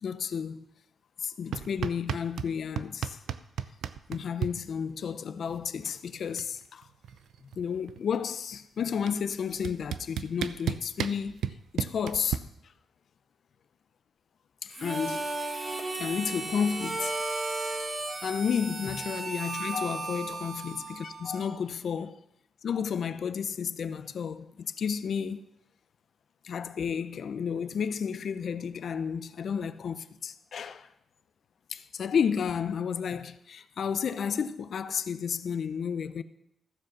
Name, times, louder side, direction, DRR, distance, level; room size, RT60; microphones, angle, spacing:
voice 1, 0.0-0.6 1.2-3.2 4.1-6.9 7.6-11.4 11.7-12.4 14.6-15.3 15.6-15.7 16.0-17.2 18.2-22.2 22.6-25.5 26.4-30.9 31.7-36.2, left 7 dB, 55° left, 0.6 m, -32 dB
sound 1, 1.5-2.5 2.8-4.5 5.8-5.9 6.1-6.5 6.8-8.2 9.1-9.2 9.6-12.4, right 8 dB, 90° right, 0.5 m, -32 dB
Harmonica, 14.7-21.6, right 2 dB, 30° right, 1.6 m, -35 dB
14.5 x 7.5 x 6.0 m
wide cardioid pair, 155°, 0 cm